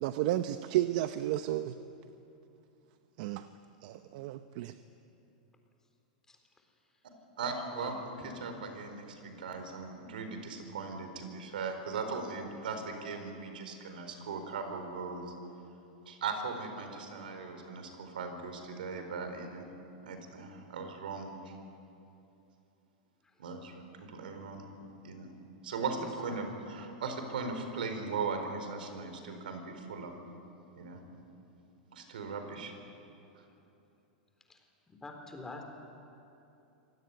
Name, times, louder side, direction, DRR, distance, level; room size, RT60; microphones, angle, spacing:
voice 1, 0.0-1.7 3.2-3.5 3.8-4.7, right 13 dB, 60° right, 10 dB, 0.8 m, -32 dB
voice 2, 6.3-6.7 7.7-8.3 23.2-23.3 26.0-26.1 33.3-33.5 34.5-34.6 34.9-35.6, left 3 dB, 10° left, 3 dB, 4.0 m, -47 dB
voice 3, 7.4-15.3 16.1-19.6 20.0-21.5 23.4-24.6 25.0-25.3 25.6-30.2 30.8-31.0 31.9-32.7, right 4 dB, 85° right, 6 dB, 4.4 m, -38 dB
25.0 x 17.5 x 9.8 m, 2.8 s
hypercardioid pair, 130°, 5 cm